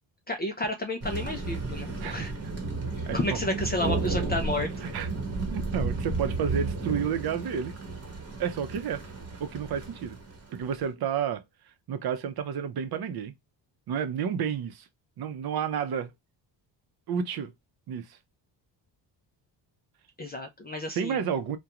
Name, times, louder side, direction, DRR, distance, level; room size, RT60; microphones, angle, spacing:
voice 1, 0.3-2.3 2.9-4.9 20.2-21.2, left 1 dB, 25° left, 0.3 m, -31 dB
Thunder, 1.0-10.7, right 3 dB, 30° right, 0.9 m, -33 dB
voice 2, 3.1-3.4 4.9-5.1 5.5-7.7 8.4-9.0 9.4-10.2 10.5-11.4 11.9-13.3 13.9-14.9 15.2-16.1 17.1-17.5 17.9-18.2 21.0-21.6, right 7 dB, 55° right, 0.6 m, -30 dB
2.4 x 2.2 x 2.8 m
cardioid pair, 110°, 46 cm